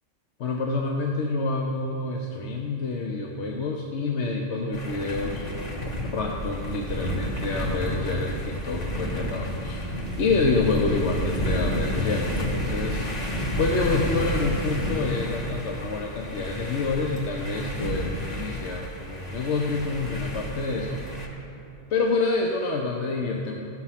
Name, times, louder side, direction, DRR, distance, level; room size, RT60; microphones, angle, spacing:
voice 1, 0.4-5.6 6.1-13.1 13.6-21.0 21.9-23.6, left 3 dB, 70° left, 1 dB, 1.0 m, -28 dB
sound 1, 4.7-21.3, equal, 35° left, 1.3 m, -30 dB
15.5 x 6.4 x 5.7 m, 2.9 s
omnidirectional pair, 1.3 m